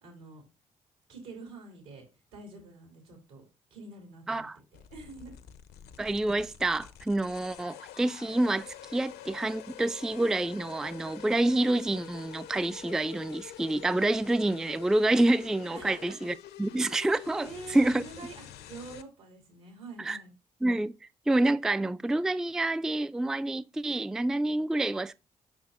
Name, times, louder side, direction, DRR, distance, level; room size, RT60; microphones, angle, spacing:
voice 1, 0.0-0.4 1.1-2.0 2.3-3.4 3.7-5.3 15.7-16.2 17.4-20.3, right 3 dB, 85° right, 2.8 m, -46 dB
sound 1, 4.7-19.0, left 11 dB, 70° left, 0.6 m, -47 dB
voice 2, 6.0-18.0 20.0-20.2 20.6-20.9 21.3-25.1, right 2 dB, 5° right, 0.3 m, -28 dB
7.1 x 5.6 x 2.5 m
hypercardioid pair, 40°, 17 cm